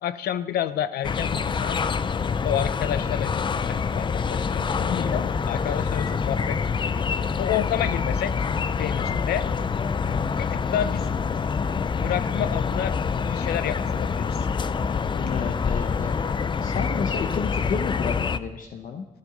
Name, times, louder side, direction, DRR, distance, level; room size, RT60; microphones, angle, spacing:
voice 1, 0.0-1.8 2.4-6.6 7.4-8.4 8.8-9.5 10.4-11.1 11.9-13.0 13.2-14.5, left 10 dB, 90° left, 14 dB, 0.6 m, -29 dB
sound 1, 1.0-18.4, left 5 dB, 30° left, 0.5 m, -26 dB
voice 2, 15.2-16.2 16.6-19.1, left 6 dB, 60° left, 5 dB, 0.9 m, -32 dB
14.0 x 11.5 x 5.3 m, 1.1 s
cardioid pair, 110°, 16 cm